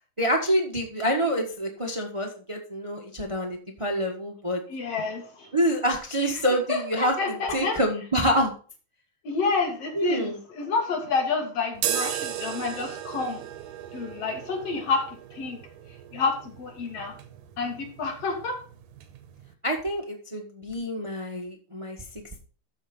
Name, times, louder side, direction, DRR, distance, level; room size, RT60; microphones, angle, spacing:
voice 1, 0.2-4.6 5.5-8.5 9.9-10.4 19.6-22.0, equal, 55° right, 1 dB, 0.3 m, -27 dB
voice 2, 4.7-5.5 6.7-7.8 9.2-13.4 13.9-15.0 15.3-15.6 16.1-17.2 17.6-18.6, left 4 dB, 55° left, 2 dB, 3.2 m, -29 dB
sound 1, 11.8-19.5, right 10 dB, 85° right, 2.3 m, -36 dB
13.0 x 4.5 x 5.4 m, 0.38 s
omnidirectional pair, 3.4 m